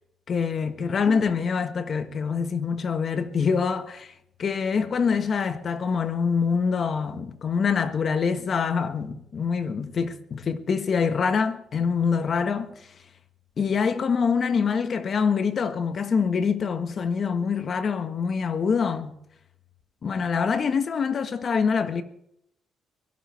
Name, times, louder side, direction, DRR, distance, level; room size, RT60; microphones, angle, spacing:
voice 1, 0.3-4.1 4.4-12.7 13.6-19.2 20.0-22.0, left 6 dB, 50° left, 1.5 m, -25 dB
23.0 x 17.0 x 3.5 m
cardioid pair, 90°, 0 cm